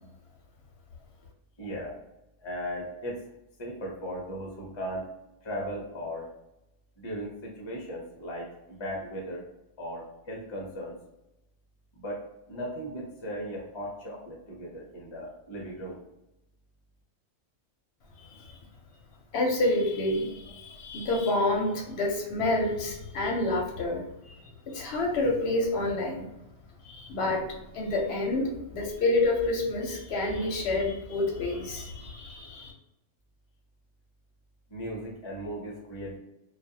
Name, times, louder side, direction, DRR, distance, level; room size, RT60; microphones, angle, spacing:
voice 1, 1.6-2.0 2.4-3.2 3.6-5.1 5.4-6.3 7.0-9.5 9.8-11.0 11.9-16.0 34.7-36.2, equal, 35° left, -2 dB, 0.5 m, -37 dB
voice 2, 18.2-18.6 19.3-26.3 26.8-32.7, left 2 dB, 65° left, -1 dB, 0.7 m, -28 dB
2.4 x 2.3 x 2.7 m, 0.90 s
omnidirectional pair, 1.3 m